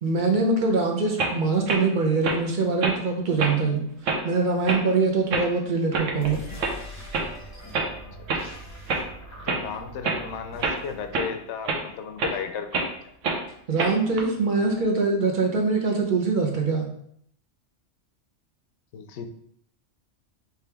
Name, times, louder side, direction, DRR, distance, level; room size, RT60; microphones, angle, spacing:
voice 1, 0.0-3.9 4.2-6.4 13.7-16.9, right 3 dB, 45° right, 1 dB, 0.9 m, -23 dB
sound 1, 1.2-1.3 1.7-1.8 2.2-2.4 2.8-3.0 3.4-3.6 4.0-4.2 4.7-4.8 5.3-5.5 5.9-6.3 6.6-6.7 7.1-7.3 7.7-7.9 8.3-8.4 8.9-9.0 9.5-9.6 10.0-10.2 10.6-10.8 11.1-11.3 11.6-11.8 12.2-12.3 12.7-12.9 13.2-13.4 13.8-14.2, right 3 dB, 80° right, 1.1 m, -26 dB
sound 2, 6.1-11.2, equal, 15° left, 0.8 m, -42 dB
voice 2, 9.5-12.9 18.9-19.3, left 7 dB, 70° left, 7 dB, 0.8 m, -34 dB
5.0 x 3.0 x 3.4 m, 0.67 s
omnidirectional pair, 1.3 m